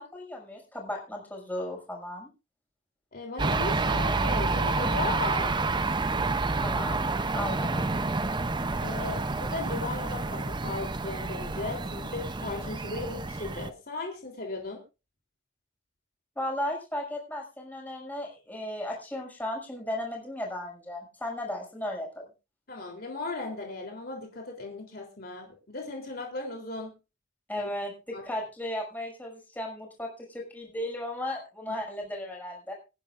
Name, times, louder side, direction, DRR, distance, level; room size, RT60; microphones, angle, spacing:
voice 1, 0.0-2.3 6.6-7.1 7.3-7.9 16.4-22.3 27.5-32.7, left 1 dB, 10° left, -1 dB, 6.2 m, -35 dB
voice 2, 3.1-5.5 8.8-14.8 22.7-26.9 27.6-27.7 28.1-28.2 31.7-31.8, left 3 dB, 50° left, 1 dB, 3.4 m, -37 dB
sound 1, 3.4-13.7, right 3 dB, 25° right, 0.6 m, -29 dB
26.5 x 10.5 x 2.5 m, 0.30 s
head